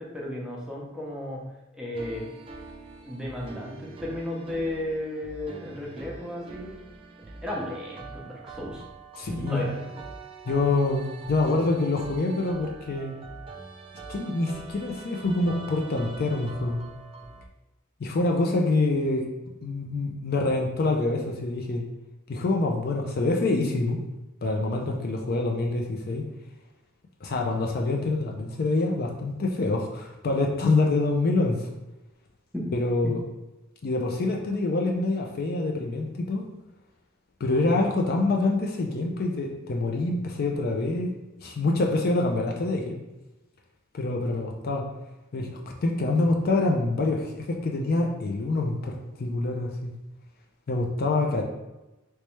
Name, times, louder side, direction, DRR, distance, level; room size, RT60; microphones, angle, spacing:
voice 1, 0.0-1.4 1.7-2.3 3.0-6.8 7.3-8.8 9.3-10.0 32.5-32.6 33.0-33.1, left 1 dB, 5° right, -4 dB, 0.7 m, -34 dB
sound 1, 1.9-17.5, right 3 dB, 25° right, 0.4 m, -44 dB
voice 2, 9.2-9.6 10.5-13.2 14.1-16.8 18.0-19.3 19.6-21.9 22.3-24.0 24.4-26.2 27.2-31.7 32.7-33.2 33.8-36.5 37.4-43.0 43.9-44.9 45.3-49.9 50.7-51.4, left 2 dB, 50° left, 2 dB, 0.4 m, -26 dB
3.2 x 3.2 x 3.1 m, 1.0 s
head